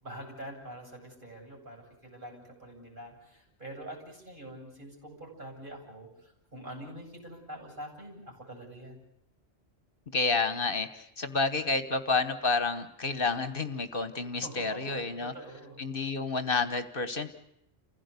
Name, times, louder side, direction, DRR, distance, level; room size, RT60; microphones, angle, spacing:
voice 1, 0.0-9.0 14.3-15.8, right 1 dB, 50° right, 1 dB, 7.8 m, -45 dB
voice 2, 10.1-15.3 15.8-17.3, left 4 dB, 55° left, 11 dB, 1.4 m, -30 dB
29.5 x 16.5 x 8.3 m, 0.80 s
omnidirectional pair, 1.1 m